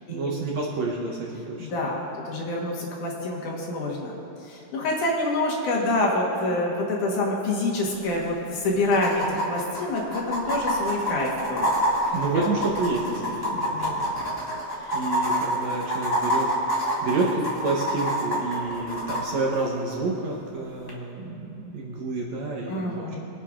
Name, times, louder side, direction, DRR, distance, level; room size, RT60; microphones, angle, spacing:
voice 1, 0.1-1.9 12.1-14.2 14.9-23.2, right 3 dB, 65° right, -2 dB, 1.9 m, -29 dB
voice 2, 1.6-11.7 12.4-12.5 13.5-14.1 14.8-15.0 22.7-23.2, left 2 dB, 70° left, -3 dB, 2.7 m, -27 dB
sound 1, 8.2-8.3 8.9-19.2 20.9-21.0, equal, 10° left, 0.9 m, -27 dB
25.0 x 8.4 x 2.5 m, 3.0 s
omnidirectional pair, 4.0 m